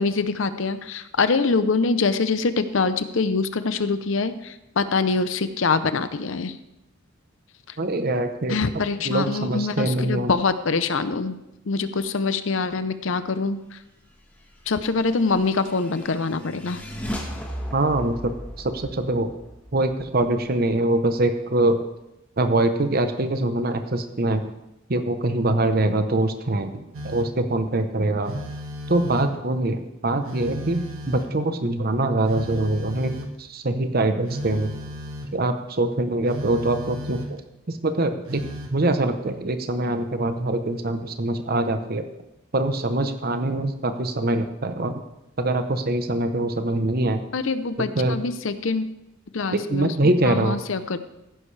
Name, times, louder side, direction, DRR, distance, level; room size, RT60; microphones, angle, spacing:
voice 1, 0.0-6.5 8.5-11.4 11.7-13.8 14.7-16.8 47.3-48.9 49.3-49.9 50.2-51.0, left 4 dB, 65° left, 12 dB, 0.7 m, -24 dB
voice 2, 7.8-8.6 9.0-10.3 17.7-19.3 19.7-21.8 22.4-24.5 24.9-28.4 28.9-34.7 35.3-37.4 37.7-42.1 42.5-45.0 45.4-47.2 47.9-48.2 49.5-50.6, right 2 dB, 45° right, 8 dB, 0.9 m, -24 dB
sound 1, 15.0-20.6, equal, 5° left, 1.3 m, -36 dB
Telephone, 26.9-27.5 28.2-29.5 30.2-31.5 32.3-33.5 34.3-35.4 36.3-37.5 38.3-38.8, equal, 85° right, 1.2 m, -34 dB
15.5 x 9.9 x 3.3 m, 0.91 s
head